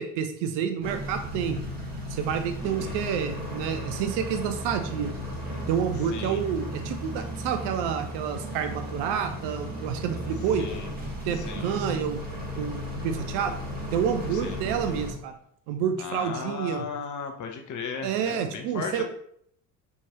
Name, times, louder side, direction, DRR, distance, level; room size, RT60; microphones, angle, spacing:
voice 1, 0.0-1.6 2.1-5.1 5.7-10.7 11.2-12.2 12.6-13.5 13.9-15.3 15.7-16.9 18.0-19.0, right 8 dB, 60° right, 7 dB, 0.7 m, -29 dB
sound 1, 0.8-15.1, equal, 20° right, 1.6 m, -35 dB
voice 2, 2.6-2.9 6.1-6.4 10.6-10.9 11.4-11.7 14.3-14.6 16.0-19.0, left 5 dB, 40° left, 4 dB, 0.9 m, -36 dB
4.4 x 3.5 x 3.0 m, 0.67 s
hypercardioid pair, 60°, 48 cm